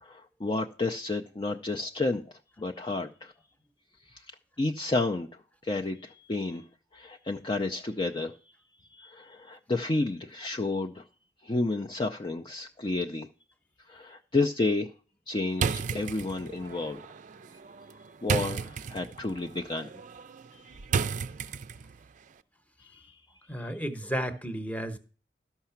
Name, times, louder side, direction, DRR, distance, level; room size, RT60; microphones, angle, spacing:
voice 1, 0.0-2.2 2.6-3.3 4.1-4.2 4.6-5.3 5.6-6.7 6.9-8.3 8.9-11.0 11.4-13.3 13.9-14.9 15.3-17.0 18.2-19.9 20.5-20.6 22.8-23.2, left 2 dB, 30° left, 0.5 m, -31 dB
sound 1, 15.5-22.0, right 6 dB, 45° right, 0.4 m, -34 dB
voice 2, 23.5-25.0, equal, 10° left, 0.9 m, -33 dB
13.0 x 5.7 x 5.7 m
head